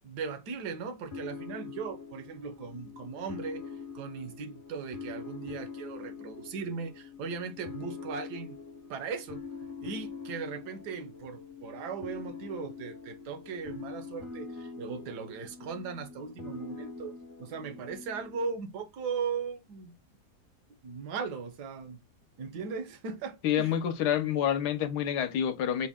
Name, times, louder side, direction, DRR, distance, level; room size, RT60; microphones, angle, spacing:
voice 1, 0.0-8.6 8.9-20.0 20.8-22.0 22.4-23.8, right 5 dB, 80° right, 1.4 m, -38 dB
sound 1, 1.1-18.6, left 5 dB, 40° left, 0.8 m, -44 dB
voice 2, 23.4-25.9, left 9 dB, 75° left, 1.3 m, -28 dB
6.2 x 2.1 x 3.5 m
omnidirectional pair, 1.8 m